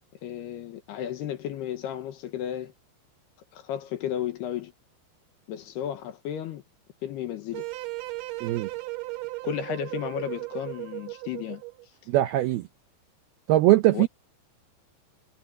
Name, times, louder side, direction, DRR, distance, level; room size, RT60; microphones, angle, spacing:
voice 1, 0.2-2.7 3.5-4.7 5.5-6.6 7.0-7.6 9.4-11.6 13.9-14.1, left 10 dB, 70° left, 3.0 m, -33 dB
sound 1, 7.5-11.9, right 22 dB, 70° right, 2.8 m, -36 dB
voice 2, 12.1-12.7 13.5-14.1, right 16 dB, 85° right, 2.2 m, -21 dB
omnidirectional pair, 5.5 m